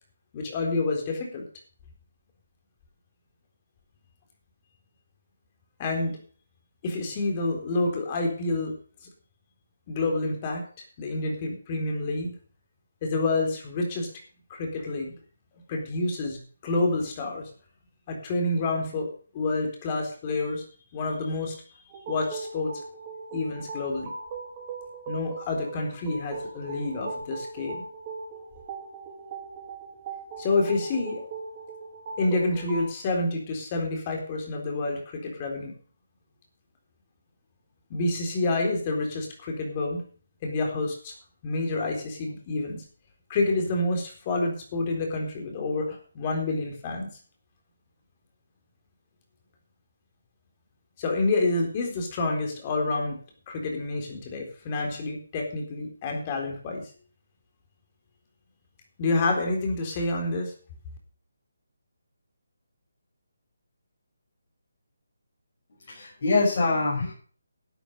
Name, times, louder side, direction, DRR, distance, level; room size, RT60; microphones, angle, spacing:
voice 1, 0.3-1.4 5.8-6.2 6.8-8.8 9.9-10.6 11.0-12.3 13.0-14.1 14.5-15.1 15.7-17.5 18.1-19.1 19.3-20.6 20.9-21.6 22.1-22.8 23.3-24.1 25.1-27.8 30.4-31.2 32.2-35.7 37.9-40.0 40.4-41.1 41.4-42.8 43.3-47.1 51.0-53.2 53.5-56.8 59.0-60.5, left 2 dB, 25° left, 2 dB, 3.9 m, -28 dB
sound 1, 21.9-32.9, right 4 dB, 25° right, 4.1 m, -39 dB
voice 2, 65.9-67.1, left 3 dB, 50° left, -6 dB, 6.3 m, -24 dB
12.0 x 9.0 x 6.6 m, 0.43 s
figure-of-eight pair, 160°, 0 cm